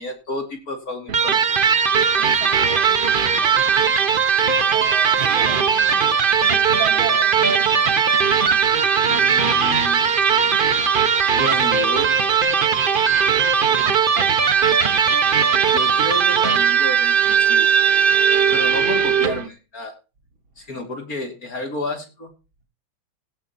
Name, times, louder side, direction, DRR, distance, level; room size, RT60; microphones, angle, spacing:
voice 1, 0.0-1.4 9.1-10.0 11.3-12.1 13.5-14.0 15.7-17.7 18.5-19.9 20.6-22.3, left 1 dB, 45° left, 3.0 m, -31 dB
Electric guitar, 1.1-19.5, right 6 dB, 40° right, 0.8 m, -18 dB
voice 2, 2.1-3.8 4.7-6.3 6.8-8.0, right 7 dB, 85° right, 2.8 m, -35 dB
17.0 x 6.3 x 4.3 m
omnidirectional pair, 2.2 m